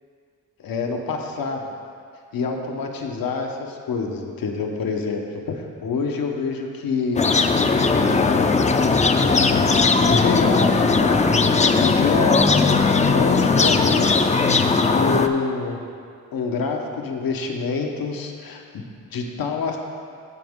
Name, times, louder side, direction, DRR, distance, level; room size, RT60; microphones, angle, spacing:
voice 1, 0.6-1.7 2.3-8.5 10.0-12.4 13.0-15.8 16.3-18.8 19.1-19.8, left 4 dB, 90° left, 2 dB, 0.9 m, -27 dB
sound 1, 7.2-15.3, left 4 dB, 20° left, 0.3 m, -18 dB
14.0 x 5.1 x 3.6 m, 2.3 s
wide cardioid pair, 115°, 34 cm